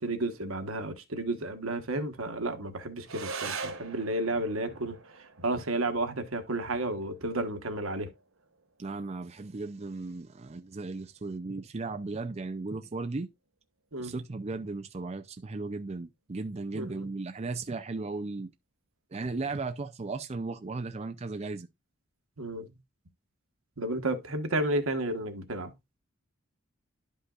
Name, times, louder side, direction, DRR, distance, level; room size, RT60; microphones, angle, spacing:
voice 1, 0.0-8.1 13.9-14.1 16.7-17.1 22.4-22.7 23.8-25.7, right 2 dB, 90° right, 1.2 m, -32 dB
sound 1, 3.0-12.0, right 4 dB, 70° right, 1.0 m, -44 dB
voice 2, 8.8-13.3 14.0-18.5 19.1-21.7, right 3 dB, 30° right, 0.5 m, -36 dB
11.5 x 5.4 x 2.4 m
head